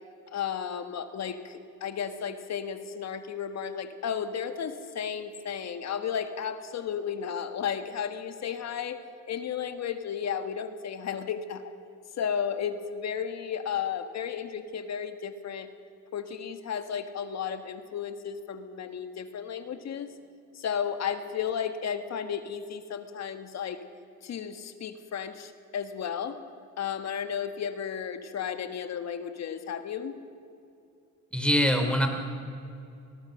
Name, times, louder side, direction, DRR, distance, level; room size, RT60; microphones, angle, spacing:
voice 1, 0.3-9.0 9.3-11.6 12.2-15.7 16.1-20.1 20.5-23.8 24.2-26.4 26.8-30.2, left 7 dB, 60° left, 9 dB, 1.7 m, -33 dB
voice 2, 31.3-32.1, equal, 5° left, 5 dB, 3.1 m, -23 dB
22.0 x 18.5 x 6.5 m, 2.6 s
cardioid pair, 90°, 30 cm